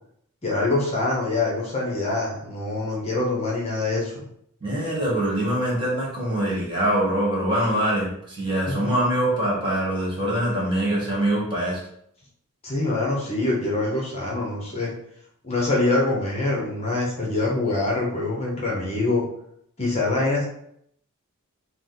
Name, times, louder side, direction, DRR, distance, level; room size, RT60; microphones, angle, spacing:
voice 1, 0.4-4.2 8.7-8.8 12.6-14.9 15.4-19.2 19.8-20.4, left 2 dB, 30° left, -3 dB, 0.9 m, -24 dB
voice 2, 4.6-11.8, right 1 dB, 25° right, -5 dB, 1.4 m, -24 dB
4.9 x 2.2 x 3.9 m, 0.70 s
head